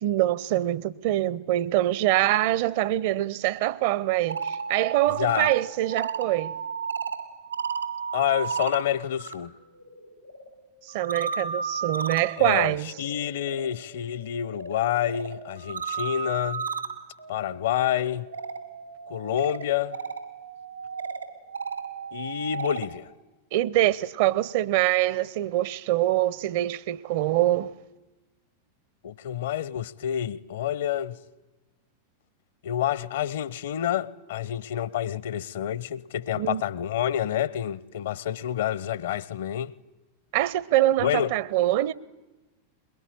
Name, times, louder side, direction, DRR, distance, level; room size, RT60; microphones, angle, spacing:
voice 1, 0.0-6.6 10.9-12.9 23.5-27.7 36.3-36.6 40.3-41.9, right 14 dB, 50° right, 0.8 m, -24 dB
sound 1, 4.1-9.3 9.7-22.9, right 6 dB, 80° right, 2.5 m, -35 dB
voice 2, 5.1-5.5 8.1-9.5 12.4-16.7 17.3-18.3 19.1-20.0 22.1-23.1 29.0-31.2 32.6-39.7 41.0-41.3, left 11 dB, 60° left, 0.8 m, -28 dB
22.5 x 22.0 x 8.9 m
figure-of-eight pair, 90°, 0 cm